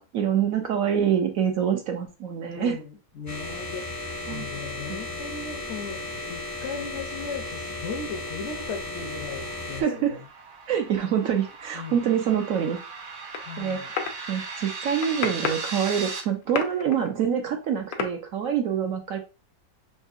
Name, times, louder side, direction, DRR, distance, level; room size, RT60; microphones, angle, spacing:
voice 1, 0.0-2.8 4.3-4.5 4.9-5.0 9.8-10.2 10.7-12.8 13.6-14.0 14.3-19.2, right 8 dB, 65° right, 0.9 m, -26 dB
voice 2, 2.6-10.2 11.7-12.0 13.4-13.9, left 5 dB, 60° left, 0.7 m, -37 dB
sound 1, 3.3-9.8, left 2 dB, 20° left, 0.4 m, -35 dB
sound 2, 8.5-16.2, right 4 dB, 80° right, 0.4 m, -38 dB
sound 3, 13.3-14.1 14.7-15.8 16.1-17.1 17.9-18.1, left 6 dB, 85° left, 1.3 m, -31 dB
5.4 x 2.8 x 2.4 m
omnidirectional pair, 1.8 m